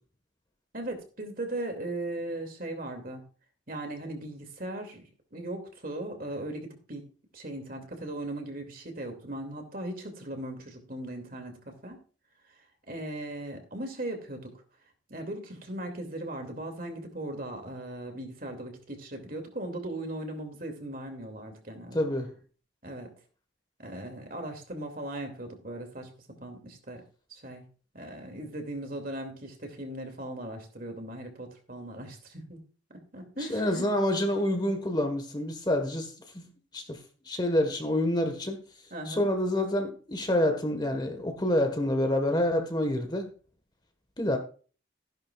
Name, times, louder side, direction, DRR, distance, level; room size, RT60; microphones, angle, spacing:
voice 1, 0.7-3.2 3.7-7.1 7.3-12.0 12.9-14.5 15.1-22.0 22.8-23.1 23.8-27.0 27.3-27.6 27.9-32.6 33.1-33.9 38.9-39.3, right 1 dB, 45° right, 2.6 m, -38 dB
voice 2, 21.9-22.3 33.5-36.4 36.7-37.0 37.2-38.6 39.1-43.3 44.2-44.4, left 1 dB, 20° left, 1.5 m, -27 dB
15.5 x 10.5 x 2.5 m
head